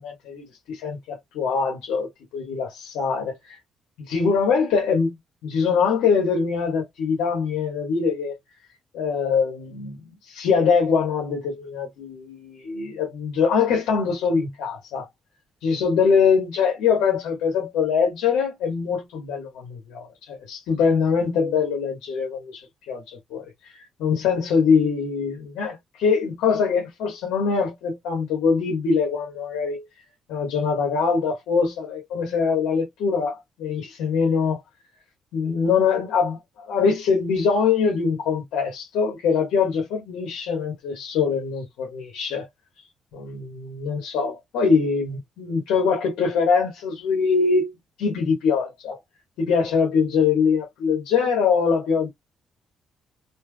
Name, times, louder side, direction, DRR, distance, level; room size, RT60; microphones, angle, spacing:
voice 1, 0.0-3.6 4.0-5.1 5.4-8.3 8.9-15.1 15.6-23.4 24.0-29.8 30.3-34.6 35.3-36.4 36.7-42.5 43.1-47.7 48.0-49.0 49.4-52.1, left 5 dB, 90° left, 1.5 m, -23 dB
3.3 x 2.9 x 2.3 m
cardioid pair, 90°, 0 cm